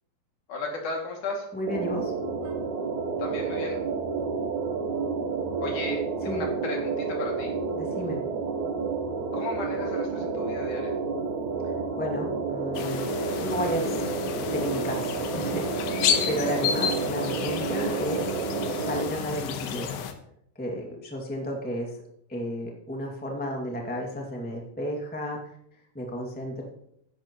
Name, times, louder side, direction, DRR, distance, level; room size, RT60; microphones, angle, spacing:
voice 1, 0.5-1.5 3.2-3.8 5.6-7.5 9.3-11.0, left 3 dB, 60° left, 0 dB, 3.7 m, -34 dB
voice 2, 1.5-2.1 6.3-6.4 7.7-8.2 11.9-13.0 13.4-14.0 14.5-15.9 16.3-18.2 18.8-20.0 20.5-21.9 22.3-25.4 25.9-26.6, equal, 5° left, 0 dB, 1.0 m, -32 dB
sound 1, 1.7-19.0, right 4 dB, 65° right, 2.3 m, -30 dB
sound 2, 12.7-20.1, left 8 dB, 85° left, 2.8 m, -31 dB
14.5 x 11.0 x 3.1 m, 0.73 s
omnidirectional pair, 4.2 m